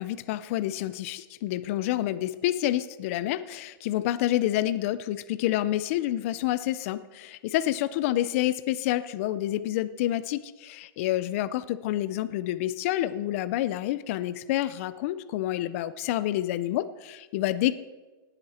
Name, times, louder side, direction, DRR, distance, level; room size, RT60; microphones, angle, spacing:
voice 1, 0.0-17.7, left 14 dB, 35° left, 14 dB, 0.4 m, -28 dB
18.0 x 7.9 x 4.3 m, 1.2 s
supercardioid pair, 165°, 12 cm